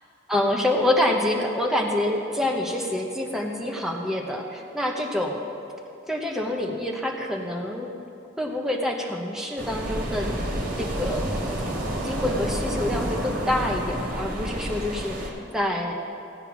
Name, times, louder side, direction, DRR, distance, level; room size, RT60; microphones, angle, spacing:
voice 1, 0.3-5.4 6.1-7.9 8.4-10.3 10.8-11.3 12.0-15.9, left 1 dB, ahead, 0 dB, 0.9 m, -26 dB
sound 1, 9.6-15.3, right 1 dB, 45° right, 2.1 m, -29 dB
16.0 x 8.9 x 6.1 m, 2.8 s
head